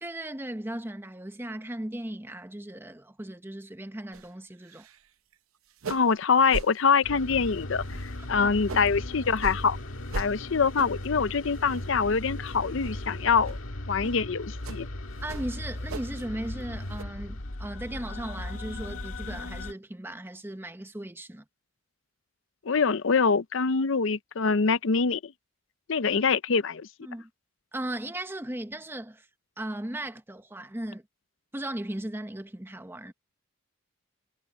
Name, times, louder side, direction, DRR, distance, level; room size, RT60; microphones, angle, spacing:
voice 1, 0.0-4.9 8.4-8.5 15.2-21.4 27.0-27.3 27.7-29.3 29.6-31.0 31.5-33.1, right 1 dB, 10° right, 0.8 m, -37 dB
sound 1, 4.1-4.3 4.6-5.1 5.3-5.4 5.7-6.2 6.5-6.7 7.2-7.5 7.9-8.9 9.4-9.6 10.1-10.3 10.7-11.1 11.5-12.0 12.3-12.5 12.8-13.0 13.4-13.6 14.0-14.2 14.6-14.8 15.2-16.2 16.5-17.0, right 3 dB, 90° right, 0.8 m, -38 dB
voice 2, 5.9-9.8 10.1-13.6 13.9-14.9 22.7-25.3 25.9-26.9, left 5 dB, 65° left, 0.6 m, -25 dB
sound 2, 7.0-19.7, left 1 dB, 80° left, 1.7 m, -37 dB
head